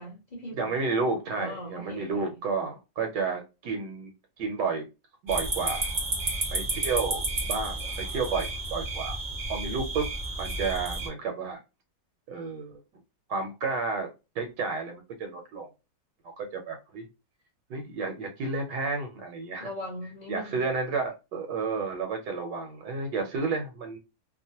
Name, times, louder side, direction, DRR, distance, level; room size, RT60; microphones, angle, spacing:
voice 1, 0.0-0.8 1.4-2.2 19.6-20.6, equal, 45° left, 0.6 m, -39 dB
voice 2, 0.5-4.1 4.4-4.8 5.2-5.9 6.5-9.2 9.5-10.1 10.4-11.6 12.3-12.8 13.3-14.1 14.3-15.7 16.2-17.1 17.7-19.7 20.3-24.0, right 4 dB, 75° right, 1.2 m, -31 dB
sound 1, 5.3-11.1, right 2 dB, 35° right, 0.8 m, -31 dB
2.9 x 2.1 x 2.7 m
omnidirectional pair, 2.0 m